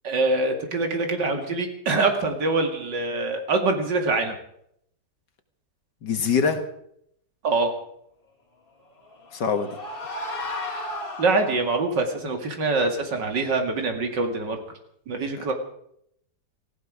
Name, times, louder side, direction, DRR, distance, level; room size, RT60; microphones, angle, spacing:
voice 1, 0.0-4.4 7.4-7.7 11.2-14.6 15.1-15.5, right 3 dB, 90° right, 4 dB, 2.9 m, -24 dB
voice 2, 6.0-6.6 9.3-9.7, left 6 dB, 80° left, 7 dB, 2.3 m, -23 dB
sound 1, 8.9-11.9, left 1 dB, 30° left, 2.4 m, -34 dB
18.5 x 15.0 x 4.9 m, 0.71 s
omnidirectional pair, 1.8 m